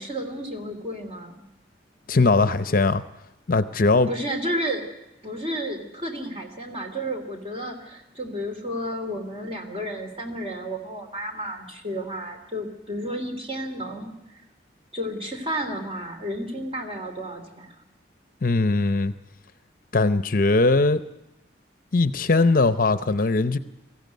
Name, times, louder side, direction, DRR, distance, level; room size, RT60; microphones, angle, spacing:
voice 1, 0.0-1.4 4.1-4.8 5.2-14.4 14.9-17.7, equal, 30° right, 4 dB, 3.1 m, -32 dB
voice 2, 2.1-3.0 3.5-4.1 18.4-19.1 19.9-21.0 21.9-23.6, left 3 dB, 50° left, 12 dB, 0.7 m, -20 dB
22.5 x 15.0 x 9.3 m, 0.96 s
head